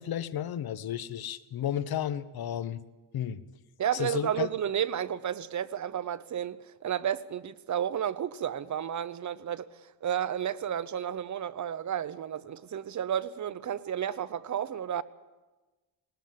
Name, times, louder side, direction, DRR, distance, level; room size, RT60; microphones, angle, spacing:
voice 1, 0.0-2.8 3.1-3.4 3.9-4.5, left 10 dB, 55° left, 1.1 m, -33 dB
voice 2, 3.8-9.7 10.0-15.0, right 9 dB, 40° right, 0.9 m, -32 dB
19.5 x 19.0 x 7.6 m
cardioid pair, 110°, 45 cm